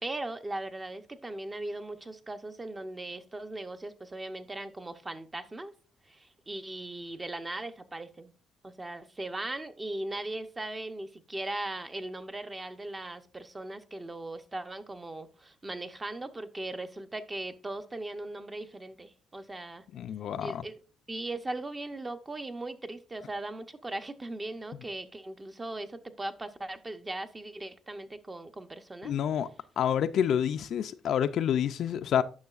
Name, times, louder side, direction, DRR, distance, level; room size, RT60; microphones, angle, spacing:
voice 1, 0.0-5.7 6.0-8.3 8.6-19.9 20.4-20.7 21.1-29.2, right 2 dB, 20° right, 0.7 m, -39 dB
voice 2, 19.9-20.6 29.0-29.5 29.8-32.2, left 9 dB, 70° left, 0.3 m, -28 dB
9.5 x 6.1 x 2.4 m
cardioid pair, 90°, 0 cm